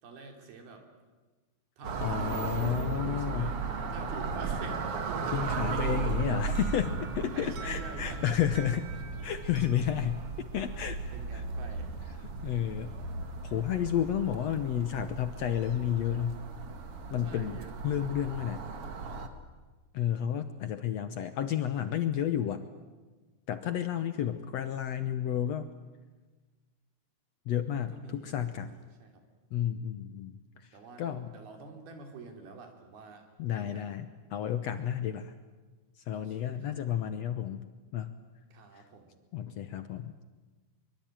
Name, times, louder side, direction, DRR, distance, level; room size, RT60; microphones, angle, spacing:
voice 1, 0.0-0.9 1.8-3.6 3.9-6.2 7.3-8.3 9.9-10.1 11.1-11.9 17.2-18.1 24.1-24.3 27.9-29.2 30.7-33.3 33.6-33.9 36.1-36.7 38.5-39.2, right 4 dB, 90° right, 4 dB, 5.0 m, -47 dB
sound 1, 1.8-19.3, right 4 dB, 50° right, 2.2 m, -36 dB
voice 2, 2.0-3.6 5.3-8.9 9.2-11.0 11.3-11.4 12.2-13.0 13.4-16.4 17.1-17.6 17.8-18.7 19.9-22.6 23.5-25.7 27.5-28.7 29.5-31.3 33.4-35.3 36.0-37.6 37.9-38.1 38.7-38.8 39.3-40.2, left 10 dB, 75° left, 10 dB, 1.5 m, -31 dB
Alarm, 6.6-11.3, right 5 dB, 65° right, 4.1 m, -51 dB
24.0 x 23.5 x 9.0 m, 1.3 s
omnidirectional pair, 4.2 m